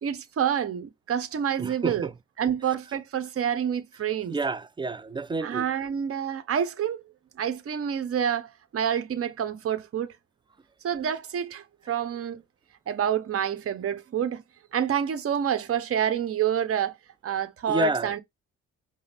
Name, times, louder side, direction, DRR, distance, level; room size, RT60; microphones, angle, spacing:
voice 1, 0.0-2.1 2.4-4.4 5.4-7.0 7.4-10.1 10.8-12.4 12.9-14.4 14.7-17.0 17.2-18.2, right 9 dB, 50° right, 0.9 m, -28 dB
voice 2, 1.6-2.1 4.3-5.6 17.7-18.1, right 3 dB, 15° right, 0.3 m, -28 dB
5.3 x 2.0 x 4.0 m
cardioid pair, 90°, 30 cm